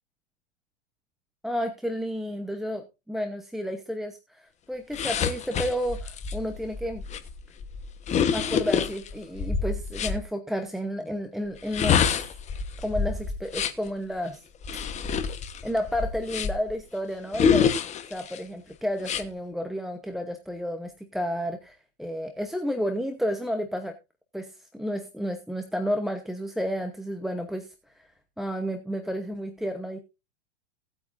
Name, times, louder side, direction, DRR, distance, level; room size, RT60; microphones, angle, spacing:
voice 1, 1.4-7.0 8.3-12.1 12.8-14.4 15.6-17.7 18.1-24.0 24.3-28.1 28.4-30.0, equal, ahead, 4 dB, 0.9 m, -31 dB
sound 1, 4.9-10.2 11.6-13.9 14.6-16.7 17.3-18.4 19.0-19.2, left 7 dB, 20° left, 1.2 m, -27 dB
18.0 x 8.7 x 2.6 m, 0.26 s
supercardioid pair, 140°, 33 cm